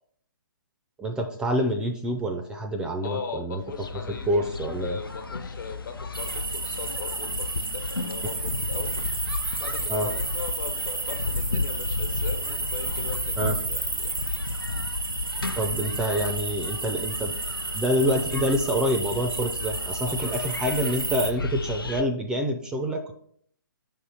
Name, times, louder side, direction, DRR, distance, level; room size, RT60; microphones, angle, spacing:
voice 1, 1.0-3.6 4.3-5.0 9.9-10.1 13.4-13.6 15.6-17.3 17.7-23.1, equal, 5° right, 5 dB, 0.4 m, -27 dB
voice 2, 3.0-9.0 9.6-14.1 20.0-20.4, left 6 dB, 60° left, 5 dB, 1.2 m, -39 dB
sound 1, 3.6-22.0, left 3 dB, 90° left, 0.5 m, -33 dB
sound 2, 6.1-21.3, right 3 dB, 85° right, 0.7 m, -32 dB
5.5 x 3.6 x 5.5 m, 0.62 s
figure-of-eight pair, 135°, 12 cm